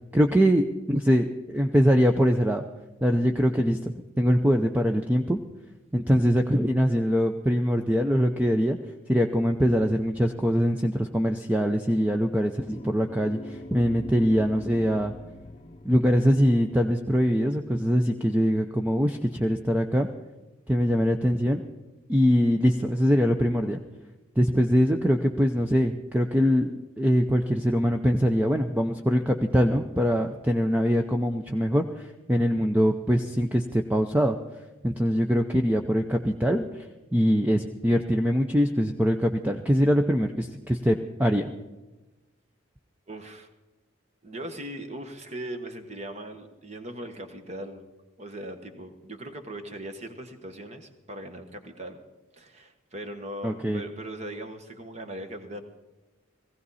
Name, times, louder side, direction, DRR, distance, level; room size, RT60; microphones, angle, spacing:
voice 1, 0.1-2.6 3.0-3.8 4.2-5.4 5.9-8.8 9.1-15.1 15.8-20.1 20.7-21.6 22.1-23.8 24.4-34.4 34.8-41.5 53.4-53.8, equal, 10° right, 4 dB, 0.6 m, -23 dB
sound 1, 12.7-18.4, left 1 dB, 30° left, 0.7 m, -44 dB
voice 2, 43.1-43.5 44.2-47.9 48.2-52.0 52.4-55.6, right 1 dB, 35° right, 7 dB, 1.4 m, -39 dB
18.0 x 16.0 x 4.2 m, 1.1 s
head